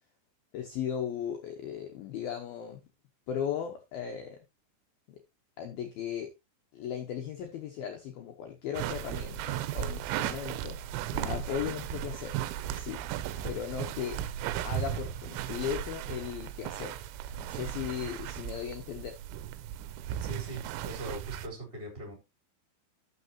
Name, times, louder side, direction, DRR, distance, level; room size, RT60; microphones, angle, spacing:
voice 1, 0.5-2.8 3.3-4.4 5.1-5.2 5.6-6.3 6.7-10.8 11.1-12.4 12.7-13.0 13.4-14.2 14.6-17.0 17.4-19.2, left 9 dB, 75° left, 2.2 m, -37 dB
sound 1, 8.8-21.5, right 11 dB, 80° right, 3.0 m, -36 dB
voice 2, 20.1-22.1, right 2 dB, 10° right, 3.6 m, -41 dB
12.5 x 6.8 x 3.0 m
omnidirectional pair, 5.8 m